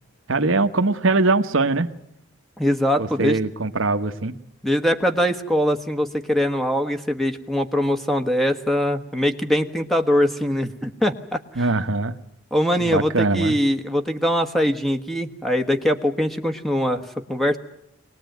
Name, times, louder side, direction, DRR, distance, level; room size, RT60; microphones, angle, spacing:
voice 1, 0.3-1.9 3.0-4.3 11.6-12.1 12.8-13.6, right 3 dB, 80° right, 7 dB, 1.2 m, -21 dB
voice 2, 2.6-3.4 4.6-11.6 12.5-17.6, equal, ahead, 4 dB, 1.4 m, -22 dB
24.0 x 19.5 x 9.3 m, 0.77 s
head